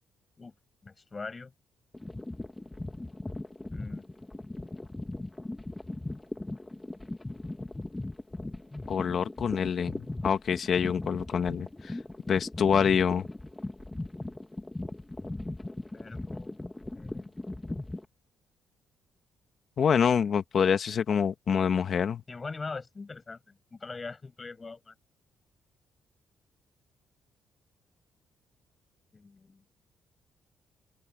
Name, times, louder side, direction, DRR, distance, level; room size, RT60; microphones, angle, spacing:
voice 1, 0.8-1.5 3.7-4.0 15.9-16.6 16.9-17.4 22.3-24.9 29.1-29.6, left 4 dB, 30° left, 7.7 m, -42 dB
sound 1, 1.9-18.0, left 2 dB, 15° left, 2.3 m, -38 dB
voice 2, 8.9-11.9 12.3-13.3 19.8-22.2, left 7 dB, 55° left, 1.7 m, -26 dB
cardioid pair, 90°, 0 cm